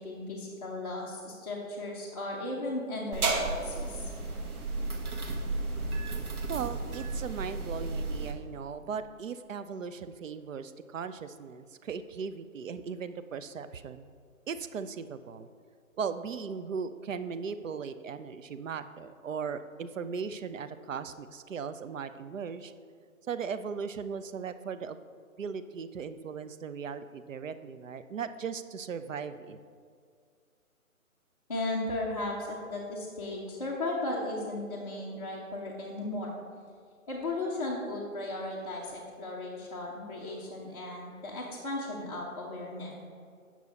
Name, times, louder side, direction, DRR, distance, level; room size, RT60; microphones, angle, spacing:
voice 1, 0.0-4.1 31.5-36.3 37.1-42.9, left 2 dB, 25° left, -6 dB, 0.7 m, -36 dB
sound 1, 3.1-8.3, right 3 dB, 85° right, 1.4 m, -33 dB
voice 2, 6.5-14.1 14.5-15.5 16.0-22.7 23.3-25.0 25.4-29.6, right 6 dB, 65° right, 11 dB, 0.5 m, -38 dB
8.5 x 6.0 x 4.1 m, 2.1 s
hypercardioid pair, 165°, 43 cm